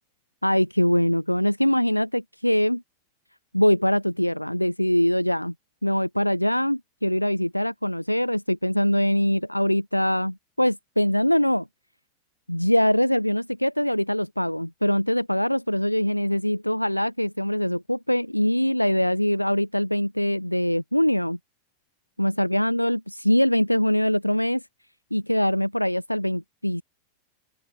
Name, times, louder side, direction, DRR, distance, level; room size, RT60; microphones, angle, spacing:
voice 1, 0.4-2.8 3.5-5.5 5.8-11.7 12.5-21.4 22.2-24.6 25.1-26.8, equal, 90° left, 7.0 m, -23 dB
open air
figure-of-eight pair, 90°, 0 cm